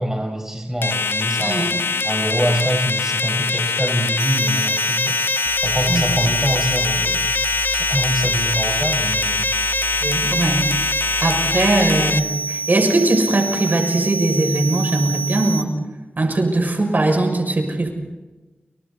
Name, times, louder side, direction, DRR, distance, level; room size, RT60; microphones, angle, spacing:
voice 1, 0.0-1.7 2.0-5.2 5.6-7.3 7.7-9.5, right 1 dB, 10° right, 2 dB, 5.3 m, -24 dB
sound 1, 0.8-12.2, left 4 dB, 80° left, 0.7 m, -23 dB
sound 2, 4.2-15.6, right 2 dB, 30° right, 1.6 m, -27 dB
sound 3, 5.5-12.3, right 3 dB, 75° right, 6.2 m, -34 dB
voice 2, 10.0-10.7 11.2-15.8 16.2-17.9, right 2 dB, 50° right, 3 dB, 6.6 m, -20 dB
30.0 x 29.0 x 4.2 m, 1.1 s
cardioid pair, 50°, 4 cm